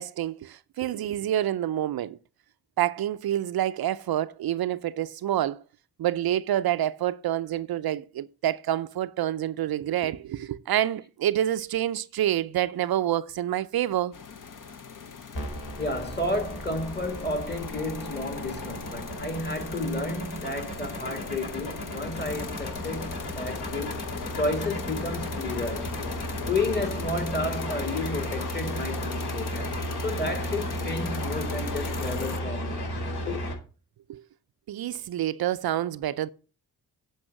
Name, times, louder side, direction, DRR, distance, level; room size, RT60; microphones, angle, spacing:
voice 1, 0.0-2.2 2.8-5.6 6.0-14.1 34.1-34.2 34.7-36.3, right 12 dB, 65° right, 0.5 m, -27 dB
sound 1, 14.1-32.4, left 5 dB, 50° left, 1.3 m, -39 dB
sound 2, 15.3-33.5, equal, 70° left, 4.4 m, -34 dB
voice 2, 15.8-24.0 24.3-26.0 26.5-29.7 30.0-33.5, left 2 dB, 25° left, 2.0 m, -32 dB
8.7 x 5.5 x 6.5 m
cardioid pair, 75°, 40 cm